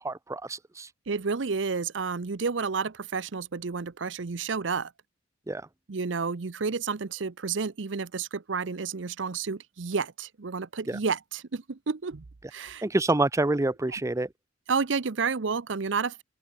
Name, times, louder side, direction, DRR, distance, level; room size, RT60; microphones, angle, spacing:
voice 1, 0.0-0.9 5.5-5.6 10.9-11.0 12.8-14.3, right 2 dB, 15° right, 0.5 m, -27 dB
voice 2, 1.1-4.9 5.9-12.2 12.5-12.8 13.9-14.0 14.7-16.2, right 5 dB, 75° right, 0.7 m, -30 dB
open air
head